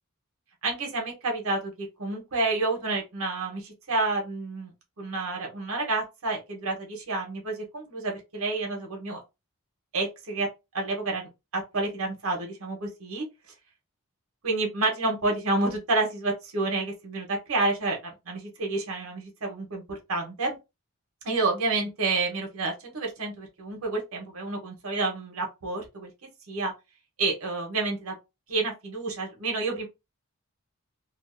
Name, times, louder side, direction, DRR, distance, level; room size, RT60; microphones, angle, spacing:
voice 1, 0.6-4.7 5.0-9.2 9.9-10.5 10.7-13.2 14.4-20.6 21.2-26.1 26.5-26.7 27.2-28.1 28.5-29.9, right 3 dB, 75° right, 0.8 m, -29 dB
2.5 x 2.1 x 2.4 m
head